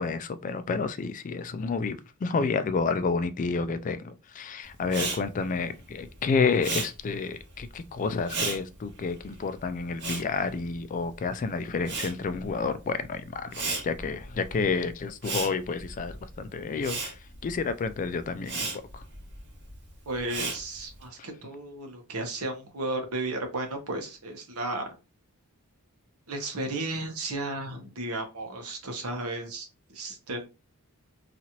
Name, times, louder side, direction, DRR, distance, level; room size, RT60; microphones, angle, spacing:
voice 1, 0.0-19.0, left 4 dB, 35° left, 0.3 m, -30 dB
Respiratory sounds, 4.8-11.3 11.6-21.0, right 3 dB, 55° right, 1.4 m, -36 dB
voice 2, 20.1-24.9 26.3-30.5, right 2 dB, 75° right, 0.9 m, -34 dB
3.0 x 2.5 x 2.8 m
head